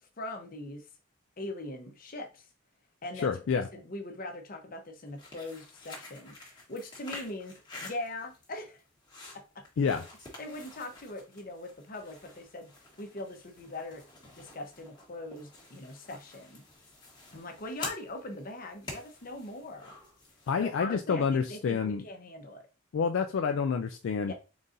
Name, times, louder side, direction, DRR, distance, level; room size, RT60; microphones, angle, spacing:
voice 1, 0.0-0.9 1.4-2.5 3.0-8.8 9.3-9.6 10.4-12.7 13.0-14.0 14.3-16.6 17.3-20.0 20.6-22.7 24.2-24.3, left 2 dB, 45° left, 0.8 m, -41 dB
voice 2, 3.2-3.7 9.8-10.0 20.5-22.0 22.9-24.3, left 6 dB, 70° left, 0.3 m, -28 dB
sound 1, 5.1-20.7, left 2 dB, 20° left, 1.1 m, -48 dB
3.9 x 3.8 x 2.5 m
head